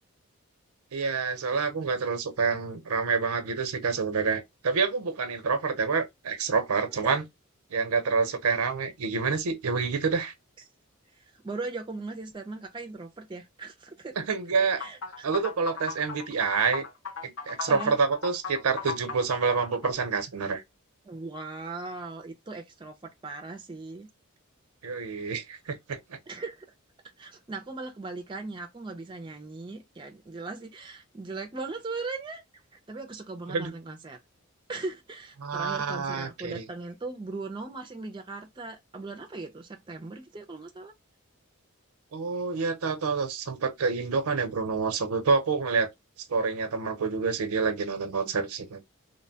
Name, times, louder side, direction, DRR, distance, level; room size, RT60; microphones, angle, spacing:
voice 1, 0.9-7.2 7.7-10.3 14.2-14.8 15.2-16.8 17.2-20.6 24.8-26.2 33.5-33.7 35.4-36.6 42.1-45.9 46.3-48.8, right 5 dB, 90° right, 0.6 m, -27 dB
voice 2, 11.2-14.2 14.8-15.3 17.7-18.0 21.0-24.1 26.3-26.7 27.2-32.4 32.7-34.2 34.7-40.9, right 3 dB, 20° right, 0.4 m, -39 dB
sound 1, 14.8-19.9, left 5 dB, 65° left, 0.5 m, -37 dB
2.7 x 2.1 x 2.7 m
head